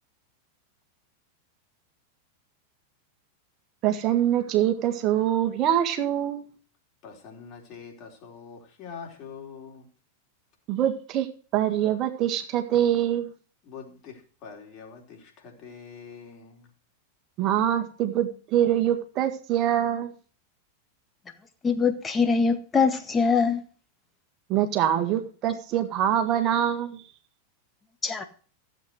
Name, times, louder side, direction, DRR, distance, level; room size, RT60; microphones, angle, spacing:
voice 1, 3.8-6.5 10.7-11.3 11.5-13.3 17.4-20.1 24.5-27.0, right 11 dB, 35° right, 1.8 m, -24 dB
voice 2, 7.0-9.9 13.6-16.7, left 6 dB, 40° left, 4.3 m, -44 dB
voice 3, 21.6-23.6 28.0-28.2, left 5 dB, 15° left, 1.7 m, -23 dB
15.5 x 8.0 x 4.8 m
figure-of-eight pair, 90°, 0 cm